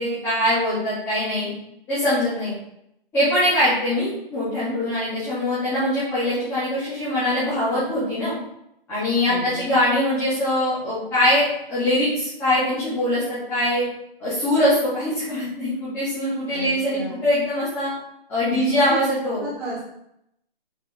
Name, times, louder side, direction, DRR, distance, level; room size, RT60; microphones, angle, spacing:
voice 1, 0.0-1.5 1.9-2.5 3.1-8.3 8.9-13.8 14.2-17.9 18.3-19.4, left 1 dB, 10° left, -15 dB, 2.6 m, -22 dB
voice 2, 9.3-9.7 16.5-17.2 18.5-19.0 19.4-19.9, right 3 dB, 10° right, -8 dB, 1.3 m, -31 dB
8.6 x 5.6 x 3.7 m, 0.79 s
hypercardioid pair, 175°, 30 cm